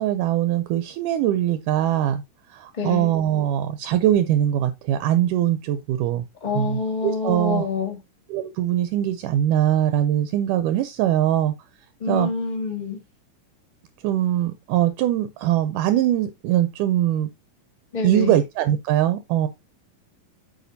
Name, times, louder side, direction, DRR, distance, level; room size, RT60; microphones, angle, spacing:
voice 1, 0.0-2.2 2.5-6.3 6.5-7.7 8.3-11.5 12.1-12.3 14.0-17.3 18.0-19.5, right 12 dB, 80° right, 2.1 m, -22 dB
voice 2, 2.7-3.1 6.4-8.0 12.0-13.0 17.9-18.4, left 4 dB, 20° left, 1.3 m, -26 dB
9.2 x 6.5 x 2.7 m
omnidirectional pair, 3.8 m